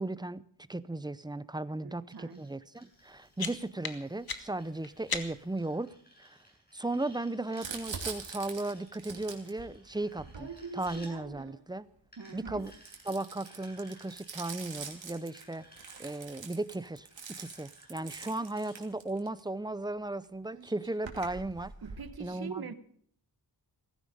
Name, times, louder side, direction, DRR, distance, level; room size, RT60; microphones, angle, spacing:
voice 1, 0.0-6.4 6.7-11.9 12.3-12.7 13.1-15.7 16.0-17.1 17.4-21.7 22.2-22.7, right 2 dB, 10° right, 0.6 m, -36 dB
voice 2, 1.8-2.4 12.2-12.7 21.8-22.7, right 6 dB, 55° right, 1.3 m, -43 dB
sound 1, 2.1-11.1 12.1-18.8, equal, 20° left, 7.1 m, -59 dB
sound 2, 2.9-5.6, left 5 dB, 55° left, 1.7 m, -40 dB
Crumpling crinkling, 7.6-11.6 12.3-19.4 20.2-20.3 20.5-22.1, right 5 dB, 85° right, 2.8 m, -44 dB
17.5 x 15.5 x 5.2 m
wide cardioid pair, 90°, 43 cm